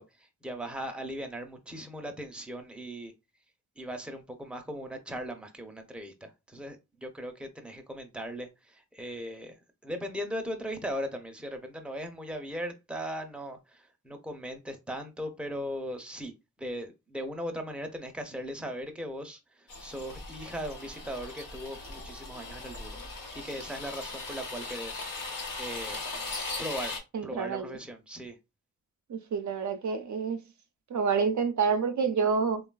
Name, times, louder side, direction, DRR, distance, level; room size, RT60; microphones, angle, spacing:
voice 1, 0.0-3.1 3.8-9.6 9.8-16.3 16.6-23.0 23.3-25.1 25.6-26.0 26.6-27.0 27.2-28.4, equal, 5° right, 0.7 m, -38 dB
sound 1, 19.7-27.0, left 3 dB, 80° left, 1.0 m, -39 dB
voice 2, 27.1-27.8 29.1-30.4 30.9-32.6, right 5 dB, 65° right, 0.5 m, -28 dB
3.1 x 2.4 x 2.2 m
cardioid pair, 45°, 33 cm